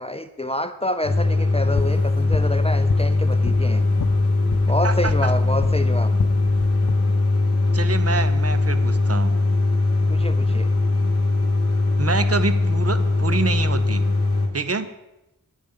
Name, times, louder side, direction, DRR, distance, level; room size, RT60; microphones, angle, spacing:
voice 1, 0.0-3.8 4.7-6.1 10.1-10.7, left 1 dB, 15° left, 11 dB, 0.5 m, -28 dB
sound 1, 1.0-14.5, left 2 dB, 40° left, 2.4 m, -20 dB
sound 2, 2.2-5.8 6.1-6.9, left 7 dB, 70° left, 0.7 m, -31 dB
voice 2, 4.8-5.3 7.7-9.3 12.0-14.1 14.5-14.9, right 4 dB, 40° right, 11 dB, 0.7 m, -26 dB
10.5 x 9.4 x 5.5 m, 0.93 s
wide cardioid pair, 85°, 38 cm